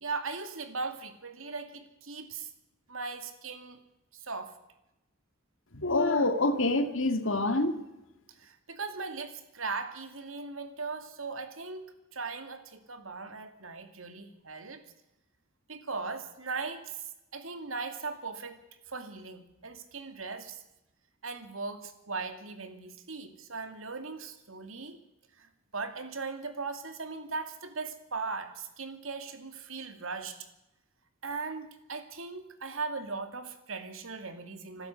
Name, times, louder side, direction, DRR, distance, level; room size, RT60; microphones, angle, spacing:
voice 1, 0.0-2.5 2.9-3.8 4.1-4.5 8.4-11.8 12.1-14.8 15.7-18.6 18.9-20.6 21.2-25.0 25.4-30.5 31.2-34.9, right 4 dB, 75° right, 2.5 m, -39 dB
voice 2, 5.7-7.8, left 2 dB, 65° left, 2.2 m, -26 dB
26.0 x 13.0 x 8.2 m
head